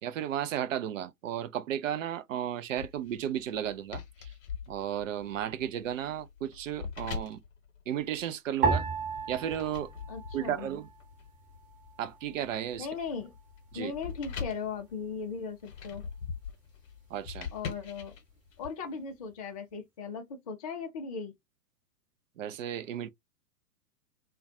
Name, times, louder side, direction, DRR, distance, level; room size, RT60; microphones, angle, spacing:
voice 1, 0.0-4.3 4.7-7.4 7.9-8.9 9.3-9.9 10.3-10.9 12.0-12.9 13.7-13.9 17.1-17.5 22.4-23.1, right 10 dB, 55° right, 0.5 m, -34 dB
sound 1, 2.8-8.6 9.2-18.7, left 6 dB, 55° left, 0.9 m, -43 dB
sound 2, 8.6-11.1 11.4-12.3 12.9-13.3, right 5 dB, 15° right, 1.0 m, -33 dB
voice 2, 10.1-10.7 12.8-13.3 13.7-16.0 17.5-18.1 18.6-21.3, left 5 dB, 30° left, 0.3 m, -38 dB
2.3 x 2.2 x 2.6 m
figure-of-eight pair, 110°, 47 cm